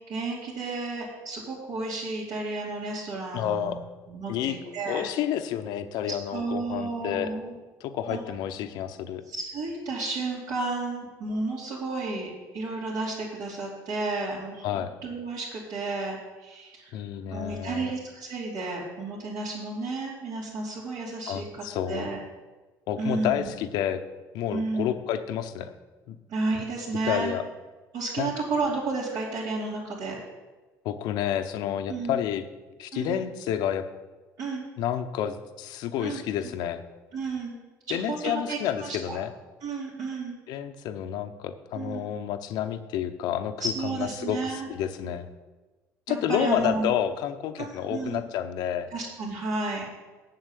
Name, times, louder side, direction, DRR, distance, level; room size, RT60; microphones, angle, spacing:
voice 1, 0.1-3.7 4.1-5.1 6.1-7.5 8.1-8.2 9.3-17.0 17.3-21.4 21.9-22.2 23.0-23.5 24.5-25.0 26.3-27.3 27.9-30.2 31.9-32.2 32.9-33.2 34.4-34.6 36.0-36.2 37.1-37.5 37.9-39.2 39.6-40.4 41.7-42.1 43.6-44.7 46.1-46.9 47.6-48.2 48.9-49.9, right 3 dB, 75° right, -9 dB, 3.0 m, -32 dB
voice 2, 3.3-3.9 4.3-7.3 7.8-9.2 14.6-14.9 16.9-17.9 21.3-22.1 22.9-24.0 24.3-25.7 26.1-26.2 27.0-27.4 28.2-28.3 30.8-32.5 32.8-33.9 34.8-36.8 37.9-39.3 40.5-45.3 46.1-48.9, left 10 dB, 80° left, 9 dB, 0.8 m, -30 dB
7.8 x 6.5 x 8.2 m, 1.2 s
cardioid pair, 95°, 7 cm